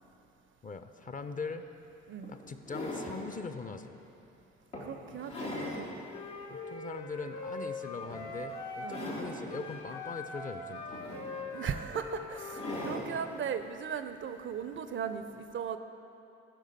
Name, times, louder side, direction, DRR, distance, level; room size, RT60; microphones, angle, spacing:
voice 1, 0.6-1.6 2.3-3.9 6.5-11.0, left 4 dB, 25° left, 9 dB, 0.5 m, -41 dB
sound 1, 1.5-1.6 2.2-3.3 3.9-4.1 4.7-5.9 6.4-6.5 8.0-8.4 8.8-9.5 10.7-11.6 12.5-13.2 14.5-14.6, left 1 dB, 85° left, 1.3 m, -39 dB
voice 2, 4.8-5.9 8.8-9.0 11.5-15.8, right 7 dB, 40° right, 10 dB, 0.5 m, -37 dB
Wind instrument woodwind instrument, 6.1-9.2 9.5-12.9, left 3 dB, 70° left, 1.0 m, -42 dB
14.5 x 5.0 x 4.0 m, 2.8 s
figure-of-eight pair, 40°, 33 cm